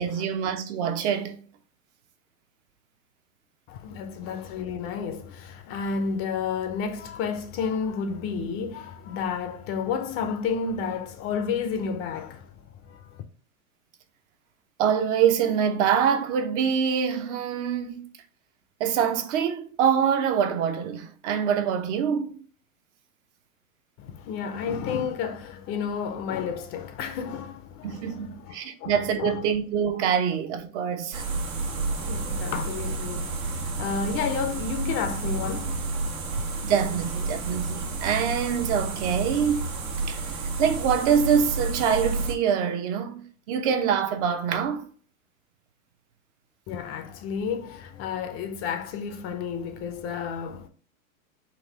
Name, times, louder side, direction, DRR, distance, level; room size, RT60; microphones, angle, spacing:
voice 1, 0.0-1.4 14.8-18.0 18.8-22.4 27.8-31.3 36.6-39.7 40.1-40.2 40.6-44.8, right 7 dB, 55° right, 0.8 m, -25 dB
voice 2, 3.7-12.5 12.8-13.2 24.0-29.4 31.7-36.4 46.7-50.7, left 6 dB, 35° left, 0.5 m, -31 dB
sound 1, 31.1-42.3, right 3 dB, 85° right, 1.3 m, -30 dB
4.1 x 2.4 x 4.4 m
hypercardioid pair, 115°, 41 cm